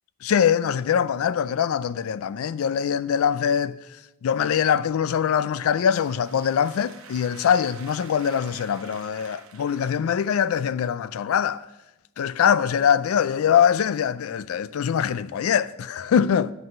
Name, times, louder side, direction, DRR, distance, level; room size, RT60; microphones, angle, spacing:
voice 1, 0.2-3.7 4.2-11.7 12.2-16.5, left 8 dB, 85° left, 0.4 m, -23 dB
sound 1, 5.5-10.6, right 6 dB, 90° right, 1.0 m, -48 dB
7.9 x 5.7 x 7.4 m
head